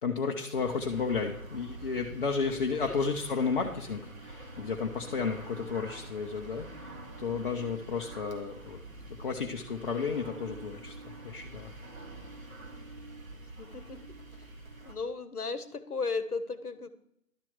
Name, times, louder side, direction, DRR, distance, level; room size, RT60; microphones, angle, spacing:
voice 1, 0.0-6.7 7.2-8.8 9.2-11.7, left 5 dB, 35° left, 0 dB, 0.8 m, -32 dB
sound 1, 0.5-15.0, right 2 dB, 65° right, 2.0 m, -46 dB
voice 2, 13.6-14.0 14.8-16.9, left 4 dB, 80° left, 13 dB, 1.1 m, -35 dB
11.5 x 4.4 x 7.2 m, 0.77 s
figure-of-eight pair, 135°, 44 cm